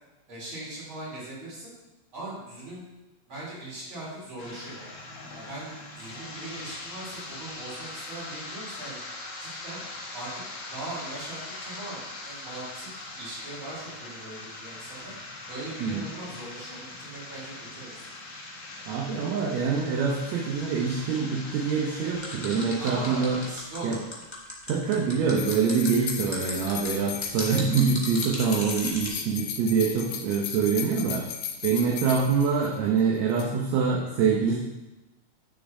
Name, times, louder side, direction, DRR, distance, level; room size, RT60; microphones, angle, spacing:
voice 1, 0.3-1.7 2.1-2.8 3.3-4.9 5.3-9.0 9.4-9.8 10.1-10.3 10.7-12.9 13.1-15.1 15.5-18.1 22.8-24.1, right 2 dB, 45° right, -7 dB, 3.9 m, -40 dB
sound 1, 4.4-23.5, left 2 dB, 50° left, 1.6 m, -41 dB
voice 2, 18.9-23.4 23.8-24.0 24.7-31.3 31.6-34.5, right 5 dB, 70° right, -3 dB, 2.0 m, -25 dB
sound 2, 22.2-29.1, left 1 dB, 35° left, 0.4 m, -36 dB
sound 3, 25.4-33.0 33.3-33.4, left 9 dB, 80° left, 2.0 m, -36 dB
11.0 x 6.8 x 2.7 m, 1.0 s
omnidirectional pair, 3.4 m